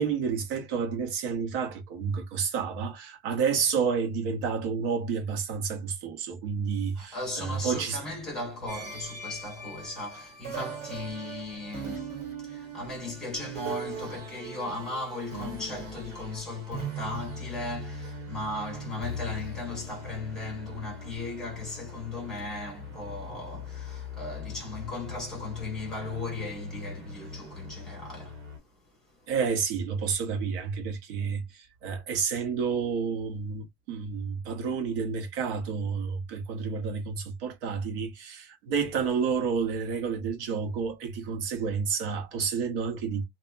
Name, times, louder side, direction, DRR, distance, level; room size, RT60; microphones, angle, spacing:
voice 1, 0.0-8.0 29.3-43.2, right 6 dB, 60° right, 1.0 m, -30 dB
voice 2, 7.0-28.4, left 2 dB, ahead, 1.0 m, -37 dB
sound 1, 8.7-28.6, right 1 dB, 40° right, 1.8 m, -40 dB
2.7 x 2.3 x 2.3 m
cardioid pair, 180°, 31 cm